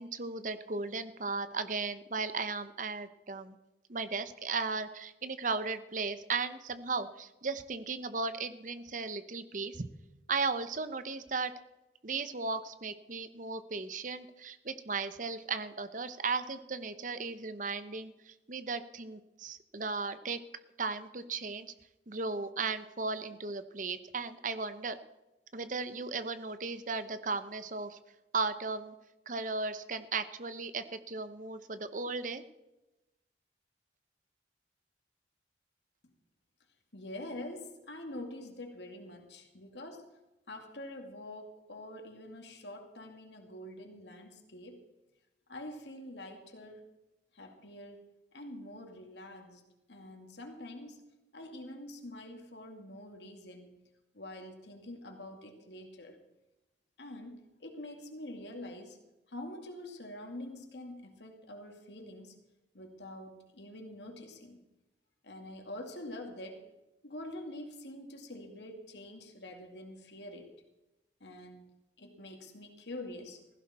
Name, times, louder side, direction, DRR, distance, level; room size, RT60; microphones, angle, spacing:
voice 1, 0.0-3.5 3.9-9.9 10.3-11.5 12.0-20.4 20.8-21.7 22.1-25.0 25.5-28.0 28.3-28.9 29.3-32.4, right 4 dB, 45° right, 11 dB, 0.9 m, -36 dB
voice 2, 36.9-40.1 40.5-44.9 45.5-46.9 47.3-48.0 48.3-49.6 49.9-51.0 51.3-53.8 54.1-56.2 57.0-59.0 59.3-62.4 62.7-64.6 65.2-66.7 67.0-70.5 71.2-71.7 72.0-73.4, left 1 dB, 80° left, 4 dB, 2.4 m, -46 dB
16.0 x 15.5 x 4.3 m, 1.0 s
head